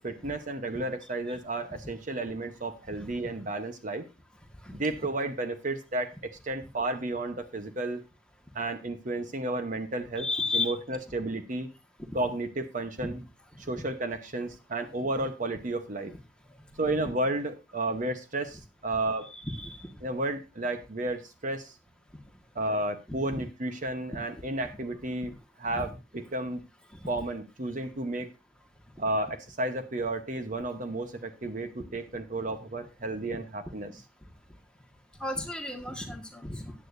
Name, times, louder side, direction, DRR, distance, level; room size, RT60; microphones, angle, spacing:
voice 1, 0.0-4.0 4.7-6.1 6.4-8.0 8.5-10.3 10.5-11.7 12.1-13.2 13.6-16.1 16.8-19.3 20.0-21.7 22.5-25.3 25.6-26.6 27.1-28.3 29.0-34.0, right 2 dB, 45° right, 8 dB, 1.0 m, -32 dB
voice 2, 10.2-10.7 13.0-13.1 19.2-19.9 23.3-23.4 25.7-25.9 35.2-36.7, left 2 dB, 5° left, 3 dB, 1.6 m, -33 dB
14.5 x 10.0 x 2.6 m, 0.27 s
head